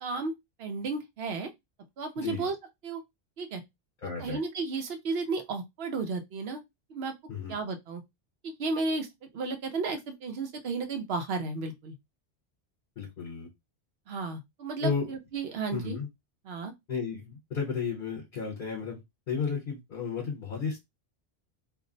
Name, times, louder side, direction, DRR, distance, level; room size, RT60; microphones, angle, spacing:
voice 1, 0.0-0.3 0.6-1.5 2.0-2.5 2.8-3.0 3.4-3.6 4.2-6.6 6.9-7.2 7.5-8.0 8.4-11.9 14.1-16.0 16.4-16.7, right 3 dB, 65° right, 0.9 m, -33 dB
voice 2, 2.2-2.5 4.0-4.4 7.3-7.6 13.0-13.5 14.8-15.1 15.7-16.1 16.9-19.0 19.3-20.8, left 5 dB, 50° left, 1.0 m, -33 dB
2.6 x 2.0 x 3.7 m
omnidirectional pair, 1.1 m